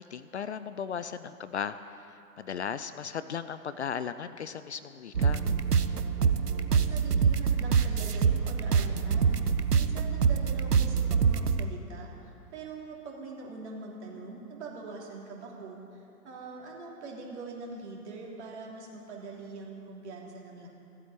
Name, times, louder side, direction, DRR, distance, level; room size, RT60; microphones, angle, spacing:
voice 1, 0.0-5.4, left 7 dB, 50° left, 13 dB, 0.5 m, -36 dB
sound 1, 5.1-11.7, right 6 dB, 80° right, 0.8 m, -25 dB
voice 2, 6.2-20.7, right 3 dB, 45° right, -2 dB, 3.3 m, -43 dB
15.5 x 8.5 x 9.4 m, 2.7 s
figure-of-eight pair, 120°, 46 cm